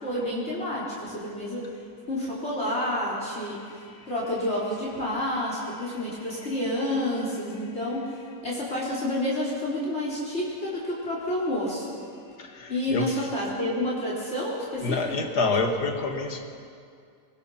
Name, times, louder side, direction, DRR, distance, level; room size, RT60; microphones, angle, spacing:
voice 1, 0.0-1.7 2.1-3.6 4.1-8.1 8.4-11.9 12.7-15.0 15.4-15.8, left 1 dB, 40° left, -6 dB, 4.5 m, -29 dB
voice 2, 14.8-16.5, left 3 dB, 70° left, 4 dB, 2.4 m, -26 dB
27.5 x 22.0 x 5.8 m, 2.3 s
omnidirectional pair, 1.8 m